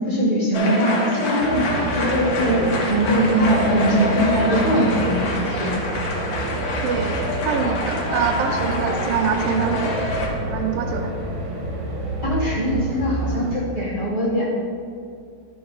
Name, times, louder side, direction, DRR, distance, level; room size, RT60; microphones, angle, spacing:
voice 1, 0.1-5.8 12.2-14.6, equal, 30° right, -7 dB, 1.5 m, -21 dB
sound 1, 0.5-10.3, left 2 dB, 55° left, 1.5 m, -26 dB
sound 2, 1.4-13.5, right 1 dB, 50° right, 1.7 m, -28 dB
voice 2, 6.8-9.9 10.5-11.1, right 7 dB, 75° right, 6 dB, 1.6 m, -24 dB
11.5 x 3.9 x 5.2 m, 2.4 s
omnidirectional pair, 3.3 m